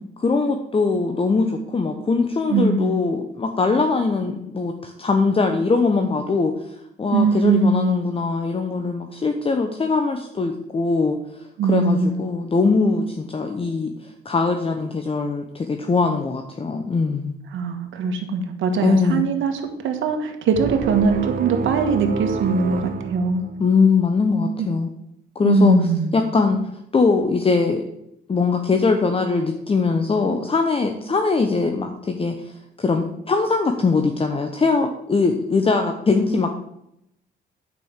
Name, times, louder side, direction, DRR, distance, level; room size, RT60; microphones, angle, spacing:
voice 1, 0.2-17.4 18.8-19.2 23.6-24.9 25.3-25.8 26.1-26.6 26.9-27.8 28.3-36.6, left 4 dB, 30° left, 5 dB, 1.0 m, -21 dB
voice 2, 2.5-3.0 7.1-8.0 11.6-12.2 17.5-19.5 19.8-23.4 24.6-24.7 25.4-26.1, right 4 dB, 75° right, 5 dB, 1.7 m, -21 dB
sound 1, 20.5-23.9, right 5 dB, 45° right, 1.0 m, -28 dB
9.5 x 5.4 x 7.3 m, 0.80 s
cardioid pair, 90°, 20 cm